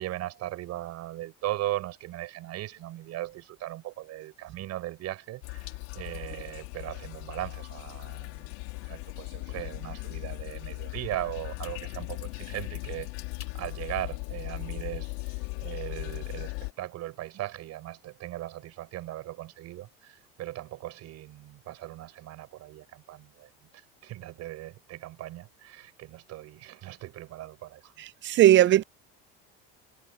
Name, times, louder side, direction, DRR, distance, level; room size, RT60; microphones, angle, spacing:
voice 1, 0.0-8.5 8.8-13.1 13.4-27.9, right 15 dB, 60° right, 5.9 m, -38 dB
sound 1, 5.4-16.7, left 27 dB, 85° left, 3.6 m, -38 dB
voice 2, 28.0-28.8, right 13 dB, 40° right, 0.5 m, -19 dB
supercardioid pair, 105°, 29 cm